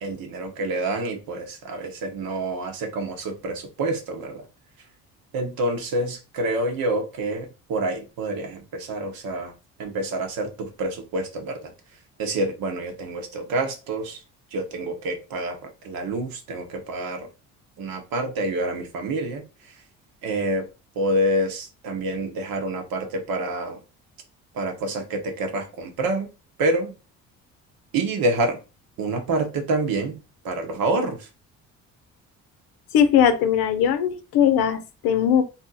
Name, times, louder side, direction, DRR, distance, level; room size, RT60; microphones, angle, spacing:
voice 1, 0.0-4.4 5.3-9.5 9.8-11.7 12.2-14.2 14.5-15.6 15.8-17.3 17.8-19.4 20.2-20.7 21.0-23.8 24.5-26.3 26.6-26.9 27.9-28.6 29.0-30.2 30.4-31.3, right 2 dB, 65° right, 1.0 m, -27 dB
voice 2, 32.9-35.4, left 8 dB, 75° left, 0.7 m, -19 dB
2.6 x 2.0 x 3.9 m
supercardioid pair, 70°, 38 cm